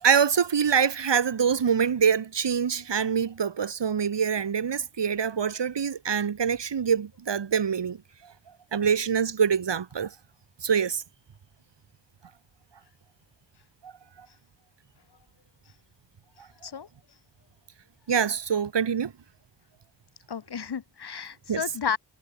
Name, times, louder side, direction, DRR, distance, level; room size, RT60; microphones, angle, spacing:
voice 1, 0.0-8.0 8.7-10.1 10.6-11.0 13.8-13.9 16.4-16.5 18.1-19.1 21.5-21.6, right 7 dB, 85° right, 3.7 m, -25 dB
voice 2, 20.3-22.0, left 7 dB, 70° left, 2.2 m, -32 dB
wide cardioid pair, 125°, 41 cm